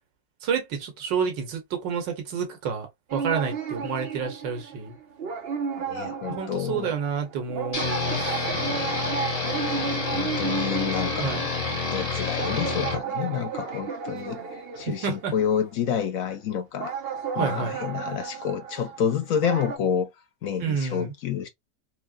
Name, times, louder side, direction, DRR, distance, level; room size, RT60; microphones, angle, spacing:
voice 1, 0.4-5.0 6.2-8.8 11.2-11.5 14.9-15.3 17.4-17.8 20.6-21.1, right 6 dB, 85° right, 1.7 m, -29 dB
sound 1, 3.1-15.6 16.8-19.8, right 6 dB, 50° right, 0.8 m, -33 dB
voice 2, 5.8-6.9 9.6-11.6 11.9-16.9 17.3-20.1 20.4-21.5, left 8 dB, 65° left, 0.9 m, -29 dB
sound 2, 7.7-13.0, left 4 dB, 25° left, 0.8 m, -29 dB
4.5 x 2.8 x 2.5 m
omnidirectional pair, 1.9 m